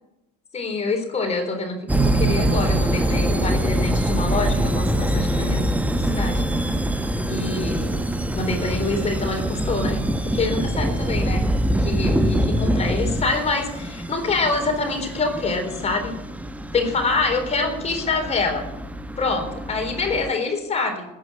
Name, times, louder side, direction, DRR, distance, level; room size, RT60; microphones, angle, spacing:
voice 1, 0.5-5.6 6.0-6.4 7.3-8.0 8.3-16.2 16.7-18.7 19.2-21.1, left 3 dB, 30° left, 4 dB, 3.8 m, -25 dB
sound 1, 1.9-20.3, right 1 dB, 5° right, 1.1 m, -24 dB
14.0 x 9.1 x 9.4 m, 0.93 s
hypercardioid pair, 85°, 21 cm